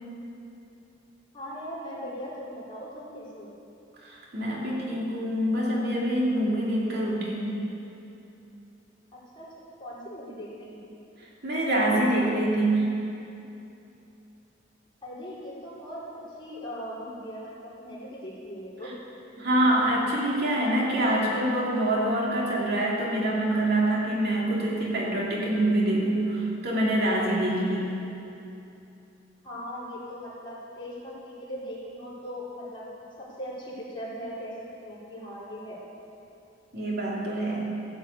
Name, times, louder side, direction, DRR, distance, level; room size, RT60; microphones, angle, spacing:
voice 1, 1.3-3.5 9.1-9.5 9.8-10.9 15.0-16.0 16.4-19.0 29.4-32.9 33.2-34.5 34.8-35.8, equal, 25° left, -8 dB, 4.0 m, -39 dB
voice 2, 4.0-7.6 11.4-12.9 19.4-28.0 36.7-37.7, right 1 dB, 60° right, -4 dB, 2.7 m, -25 dB
15.0 x 7.4 x 8.3 m, 2.8 s
head